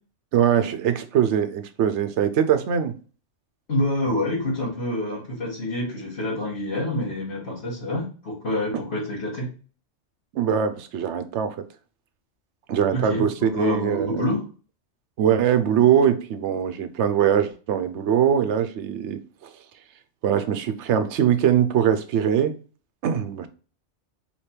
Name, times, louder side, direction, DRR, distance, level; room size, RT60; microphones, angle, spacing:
voice 1, 0.3-2.9 10.3-11.6 12.7-14.3 15.2-19.5 20.2-22.5 23.0-23.5, right 9 dB, 75° right, 0.9 m, -22 dB
voice 2, 3.7-9.5 12.9-14.4, left 1 dB, 65° left, 1.6 m, -27 dB
3.3 x 2.9 x 4.3 m
omnidirectional pair, 1.2 m